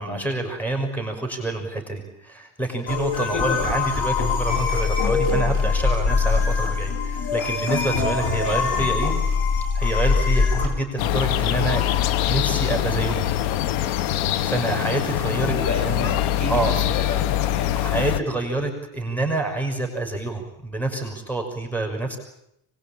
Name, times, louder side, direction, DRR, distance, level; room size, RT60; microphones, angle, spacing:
voice 1, 0.0-9.1 9.7-11.8 12.3-13.3 14.1-15.5 15.8-16.1 16.5-16.7 17.8-22.2, right 2 dB, 5° left, 2 dB, 6.2 m, -27 dB
sound 1, 2.9-10.7, left 4 dB, 65° left, 7.7 m, -22 dB
voice 2, 3.3-3.9 8.4-8.6 15.4-18.0, left 4 dB, 40° left, 3 dB, 6.5 m, -31 dB
sound 2, 11.0-18.2, left 12 dB, 85° left, 1.3 m, -23 dB
24.5 x 21.5 x 8.9 m, 0.80 s
supercardioid pair, 95°, 45 cm